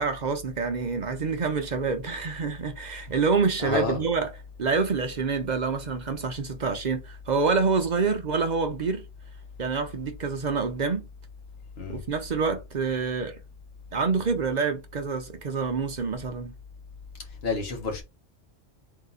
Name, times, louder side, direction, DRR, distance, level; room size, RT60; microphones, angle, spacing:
voice 1, 0.0-4.3 4.6-9.1 9.6-11.1 11.9-13.4 13.9-16.5, right 4 dB, 55° right, 0.5 m, -27 dB
voice 2, 3.6-4.0 11.8-12.0 17.4-18.0, left 4 dB, 55° left, 1.5 m, -29 dB
3.8 x 2.7 x 3.9 m
omnidirectional pair, 1.3 m